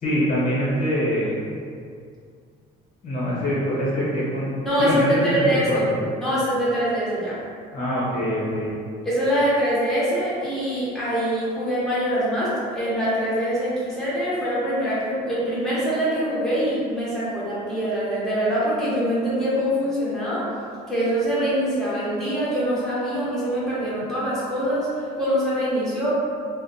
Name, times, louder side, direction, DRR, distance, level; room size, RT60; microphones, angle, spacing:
voice 1, 0.0-1.4 3.0-4.5 4.8-5.8 7.7-8.7, equal, 55° left, -8 dB, 1.1 m, -24 dB
voice 2, 4.6-5.8 6.2-7.4 9.0-20.5 20.9-26.1, equal, ahead, -10 dB, 0.8 m, -24 dB
2.5 x 2.1 x 2.7 m, 2.3 s
cardioid pair, 110°, 17 cm